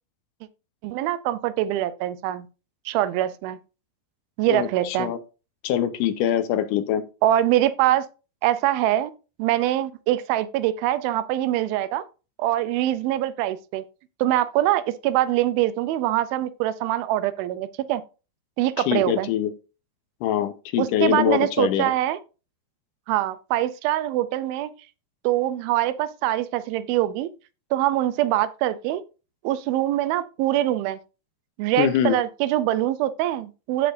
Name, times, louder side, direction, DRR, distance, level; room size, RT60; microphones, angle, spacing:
voice 1, 0.8-2.5 2.9-3.6 4.4-5.1 7.2-8.1 8.4-9.1 9.4-12.0 12.4-13.9 14.2-18.0 18.6-19.3 20.8-22.2 23.1-24.7 25.2-27.3 27.7-29.0 29.4-31.0 31.6-33.9, right 13 dB, 90° right, 2.5 m, -23 dB
voice 2, 4.5-5.2 5.6-7.0 18.9-19.5 20.2-21.9 31.8-32.2, left 11 dB, 75° left, 2.2 m, -23 dB
15.0 x 5.1 x 2.6 m
omnidirectional pair, 4.2 m